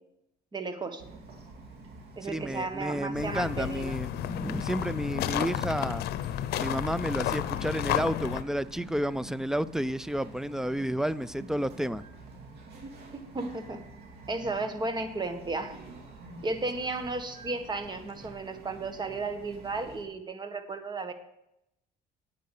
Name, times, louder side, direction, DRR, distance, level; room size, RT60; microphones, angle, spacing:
voice 1, 0.5-1.0 2.2-4.0 13.1-13.8 14.3-15.8 16.4-21.1, right 3 dB, 25° right, 8 dB, 1.7 m, -34 dB
Bird vocalization bird call bird song, 1.0-20.1, right 3 dB, 75° right, 2.5 m, -48 dB
voice 2, 2.2-6.0 6.6-12.0, equal, 5° right, 18 dB, 0.4 m, -31 dB
sound 1, 3.1-8.4, left 12 dB, 70° left, 0.8 m, -32 dB
9.4 x 9.2 x 6.6 m, 0.81 s
cardioid pair, 110°, 17 cm